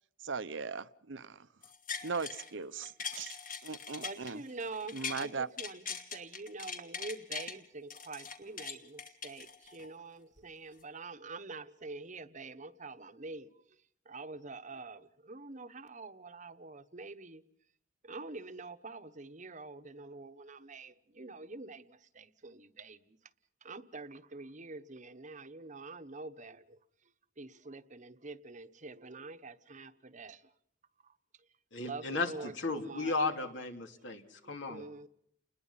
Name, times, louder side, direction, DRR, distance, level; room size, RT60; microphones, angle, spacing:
voice 1, 0.2-1.5 2.0-3.4 3.6-4.4 4.9-5.5, right 4 dB, 70° right, 0.9 m, -38 dB
sound 1, 1.6-2.5 2.8-5.3 5.6-7.5 7.9-9.9 10.4-10.5, left 5 dB, 45° left, 2.8 m, -41 dB
voice 2, 4.0-13.5 14.1-17.4 18.0-23.0 23.6-26.8 27.4-30.4 31.8-33.1 34.7-35.1, right 3 dB, 40° right, 1.1 m, -46 dB
voice 3, 31.7-34.8, left 3 dB, 70° left, 3.0 m, -35 dB
30.0 x 21.0 x 5.8 m
head